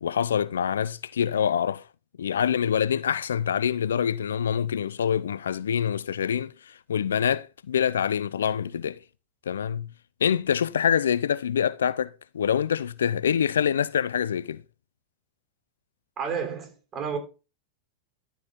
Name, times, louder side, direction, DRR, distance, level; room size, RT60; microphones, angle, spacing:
voice 1, 0.0-1.8 2.2-9.0 9.5-9.9 10.2-14.6, left 8 dB, 80° left, 0.4 m, -25 dB
voice 2, 16.2-17.2, right 6 dB, 30° right, 3.3 m, -31 dB
13.0 x 4.6 x 3.7 m
hypercardioid pair, 100°, 0 cm